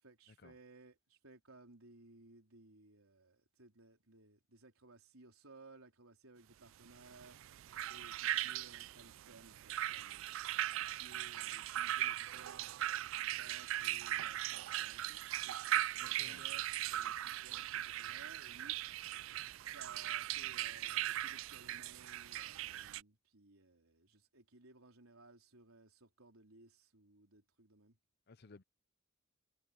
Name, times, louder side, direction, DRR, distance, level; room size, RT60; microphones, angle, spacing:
voice 1, 0.0-7.4 7.9-10.3 10.8-12.7 13.1-19.1 19.7-28.0, right 2 dB, 85° right, 4.2 m, -60 dB
sound 1, 7.1-23.0, right 13 dB, 65° right, 0.3 m, -39 dB
voice 2, 16.0-16.5 28.3-28.6, left 3 dB, 50° left, 0.7 m, -57 dB
head